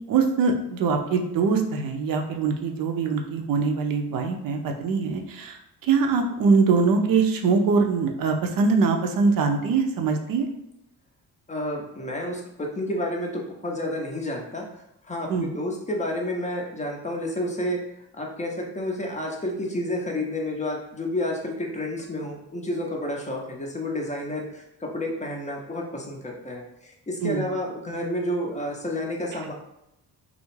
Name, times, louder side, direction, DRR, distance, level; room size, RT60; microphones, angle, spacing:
voice 1, 0.1-10.5 15.3-15.5 27.2-27.4, right 4 dB, 50° right, 3 dB, 0.5 m, -23 dB
voice 2, 11.5-14.6 15.0-17.8 18.1-29.5, left 1 dB, 15° left, -1 dB, 0.5 m, -30 dB
2.4 x 2.0 x 3.1 m, 0.83 s
hypercardioid pair, 55°, 44 cm